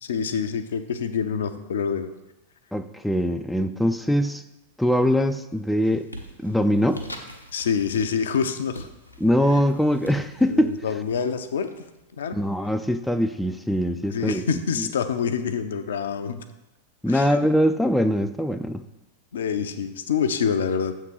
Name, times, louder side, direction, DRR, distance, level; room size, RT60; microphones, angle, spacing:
voice 1, 0.0-2.1 7.5-8.9 9.5-9.6 10.5-11.8 12.2-12.4 14.1-16.4 17.1-17.4 19.3-20.9, left 6 dB, 65° left, 9 dB, 0.5 m, -26 dB
voice 2, 2.7-4.4 4.8-6.1 6.4-7.0 9.2-10.8 12.3-14.4 14.8-14.9 17.0-18.8, equal, ahead, 8 dB, 0.3 m, -22 dB
sound 1, 4.8-5.2 5.6-12.2, equal, 85° left, 0.8 m, -44 dB
7.2 x 3.7 x 6.2 m, 0.98 s
figure-of-eight pair, 90°, 0 cm